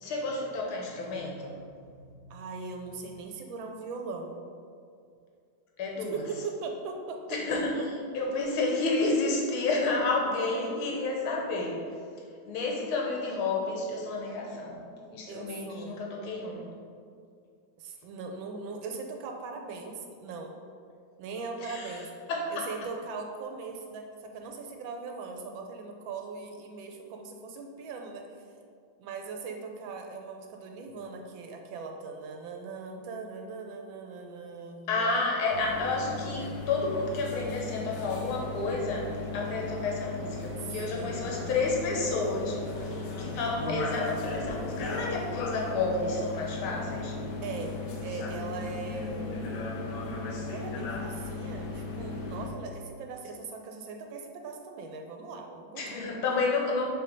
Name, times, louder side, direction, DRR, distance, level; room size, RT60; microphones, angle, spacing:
voice 1, 0.0-1.6 2.2-2.4 5.8-6.2 7.3-11.8 12.5-14.8 15.1-16.7 21.6-22.0 22.3-22.7 34.9-47.2 55.8-56.9, left 3 dB, 80° left, -1 dB, 1.9 m, -30 dB
voice 2, 2.3-4.4 6.0-7.4 15.3-16.1 17.8-20.5 21.2-22.1 22.5-28.4 29.0-35.2 40.6-41.3 47.4-49.5 50.5-56.1, right 4 dB, 75° right, 3 dB, 1.3 m, -40 dB
sound 1, 35.5-52.5, left 3 dB, 65° left, 1.2 m, -36 dB
6.8 x 3.3 x 5.2 m, 2.3 s
omnidirectional pair, 2.3 m